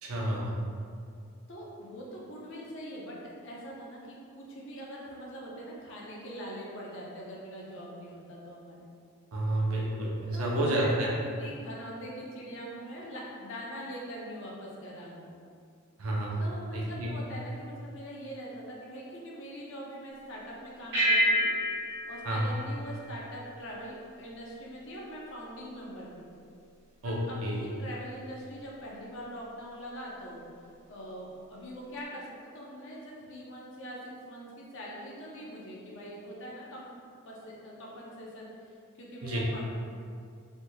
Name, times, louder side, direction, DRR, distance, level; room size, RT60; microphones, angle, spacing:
voice 1, 0.0-0.5 9.3-11.1 16.0-16.5 16.7-17.1 22.2-22.5 27.0-27.6 39.2-39.4, right 1 dB, 75° right, -3 dB, 0.6 m, -30 dB
voice 2, 1.5-3.2 3.4-8.9 10.3-15.3 16.4-21.5 22.1-26.3 27.0-30.4 30.9-36.9 37.3-39.7, equal, 60° left, -4 dB, 0.6 m, -43 dB
sound 1, 20.9-23.7, equal, 55° right, 1.3 m, -29 dB
3.4 x 2.9 x 2.2 m, 2.3 s
head